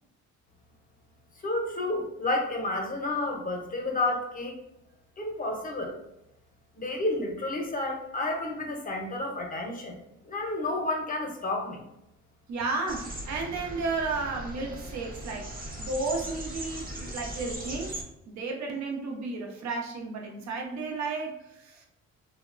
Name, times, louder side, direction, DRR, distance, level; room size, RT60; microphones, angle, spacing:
voice 1, 1.4-4.6 5.2-6.0 6.8-10.0 10.2-11.8, left 2 dB, 30° left, 2 dB, 0.7 m, -30 dB
voice 2, 12.5-15.5 15.8-21.9, right 3 dB, 65° right, 1 dB, 0.7 m, -33 dB
sound 1, 12.9-18.0, right 1 dB, 30° right, 0.7 m, -39 dB
2.8 x 2.1 x 2.4 m, 0.84 s
cardioid pair, 90°, 30 cm